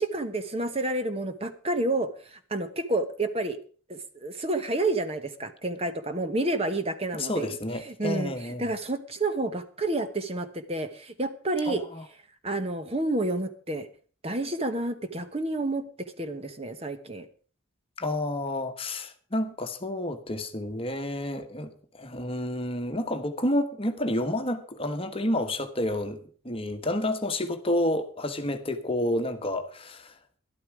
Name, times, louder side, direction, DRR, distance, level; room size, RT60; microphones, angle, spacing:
voice 1, 0.0-3.6 3.9-7.6 7.9-11.8 12.4-13.9 14.2-15.8 16.2-17.3, right 2 dB, 30° right, 9 dB, 1.1 m, -29 dB
voice 2, 7.1-8.7 11.6-12.0 18.0-26.2 26.4-30.1, left 1 dB, 30° left, 7 dB, 1.3 m, -30 dB
12.5 x 12.0 x 4.8 m, 0.42 s
head